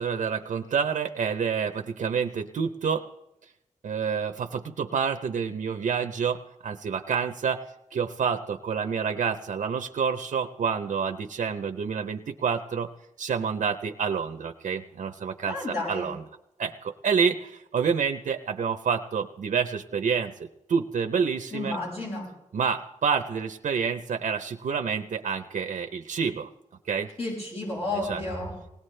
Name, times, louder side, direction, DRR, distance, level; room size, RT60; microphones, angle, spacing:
voice 1, 0.0-3.1 3.8-12.9 13.2-16.2 16.6-21.8 22.5-26.5 26.8-27.1 28.0-28.2, right 6 dB, 85° right, 7 dB, 0.7 m, -28 dB
voice 2, 15.5-16.1 21.5-22.3 27.2-28.5, left 2 dB, 55° left, -4 dB, 6.5 m, -31 dB
19.5 x 18.0 x 3.3 m, 0.88 s
wide cardioid pair, 145°, 13 cm